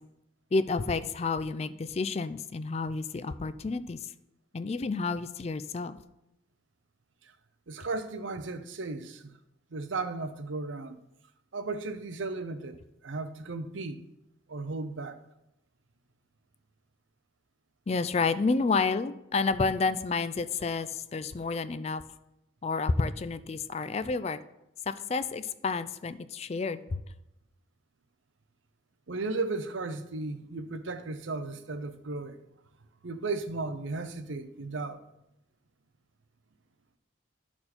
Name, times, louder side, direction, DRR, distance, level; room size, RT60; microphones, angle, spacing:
voice 1, 0.5-4.1 4.5-6.0 17.9-22.0 22.6-24.4 24.9-27.0, left 4 dB, 30° left, 0.3 m, -30 dB
voice 2, 7.7-9.3 9.7-11.0 11.5-14.0 14.5-15.2 29.1-32.4 33.0-35.0, right 3 dB, 75° right, 0.7 m, -35 dB
12.0 x 4.4 x 4.3 m
head